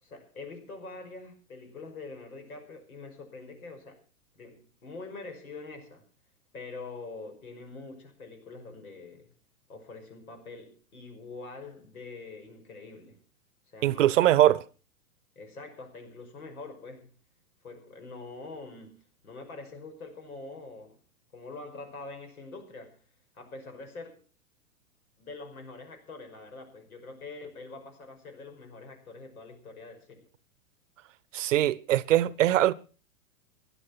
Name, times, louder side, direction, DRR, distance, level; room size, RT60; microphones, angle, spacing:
voice 1, 0.0-4.0 4.3-6.1 6.5-9.3 9.7-13.2 13.7-14.4 15.4-17.1 17.6-21.0 21.3-23.0 23.3-24.2 25.2-30.2, left 3 dB, 75° left, 5.7 m, -44 dB
voice 2, 13.8-14.6 31.3-32.7, right 13 dB, 60° right, 0.9 m, -22 dB
16.0 x 11.0 x 6.1 m
hypercardioid pair, 110°, 43 cm